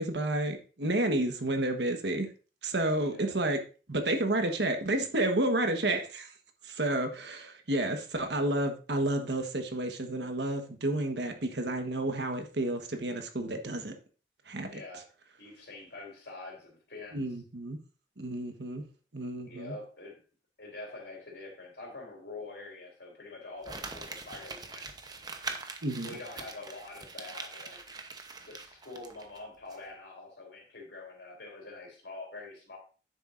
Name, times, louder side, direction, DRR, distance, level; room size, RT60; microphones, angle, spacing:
voice 1, 0.0-2.3 2.6-3.6 3.9-6.3 6.6-13.9 14.5-14.8 17.1-17.8 18.2-18.8 19.1-19.7 25.8-26.1, right 1 dB, 75° right, 6 dB, 1.3 m, -30 dB
voice 2, 2.8-3.3 14.7-15.1 15.4-17.2 19.4-20.2 20.6-24.9 26.0-27.9 28.4-32.8, left 2 dB, 80° left, 0 dB, 3.4 m, -45 dB
Crumpling crinkling, 23.6-29.4 29.7-29.8, right 4 dB, 25° right, 0.8 m, -43 dB
9.7 x 7.4 x 2.6 m, 0.36 s
head